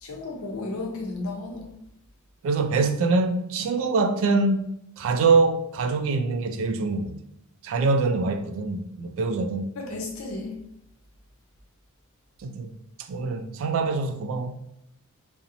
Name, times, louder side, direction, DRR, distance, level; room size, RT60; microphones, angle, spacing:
voice 1, 0.0-1.6 9.8-10.6, left 2 dB, 75° left, 0.6 m, -33 dB
voice 2, 2.4-4.7 5.0-7.2 7.6-9.7 12.4-12.7 13.1-14.6, right 3 dB, 65° right, 0.3 m, -24 dB
2.5 x 2.0 x 2.7 m
head